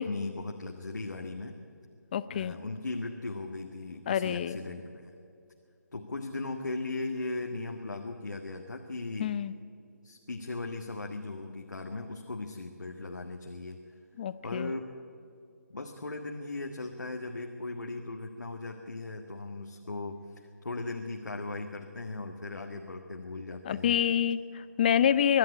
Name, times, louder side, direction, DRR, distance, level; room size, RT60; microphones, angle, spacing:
voice 1, 0.0-1.6 2.3-5.1 5.9-9.4 10.0-13.8 14.4-14.9 15.7-20.2 20.6-24.0, left 2 dB, 75° left, 3 dB, 1.7 m, -38 dB
voice 2, 2.1-2.6 4.1-4.6 9.2-9.5 14.2-14.7 23.7-25.4, left 9 dB, 30° left, 15 dB, 0.6 m, -27 dB
23.5 x 11.5 x 9.9 m, 2.4 s
figure-of-eight pair, 150°, 10 cm